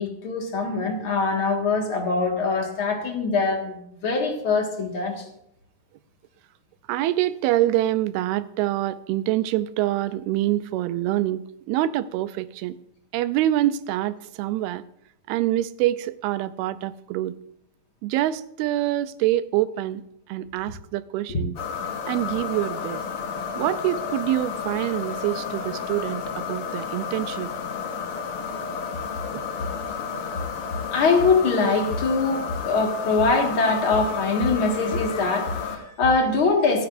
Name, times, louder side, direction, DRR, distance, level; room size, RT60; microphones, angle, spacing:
voice 1, 0.0-5.3 30.9-36.9, left 4 dB, 45° left, 2 dB, 2.1 m, -23 dB
voice 2, 6.9-11.4 11.7-12.8 13.1-14.8 15.3-17.4 18.0-20.0 20.3-21.6 22.1-23.0 23.6-27.5 29.3-29.4, right 14 dB, 90° right, 14 dB, 2.6 m, -25 dB
sound 1, 21.6-35.8, left 6 dB, 60° left, 1.5 m, -32 dB
27.0 x 9.9 x 2.6 m, 0.74 s
omnidirectional pair, 4.4 m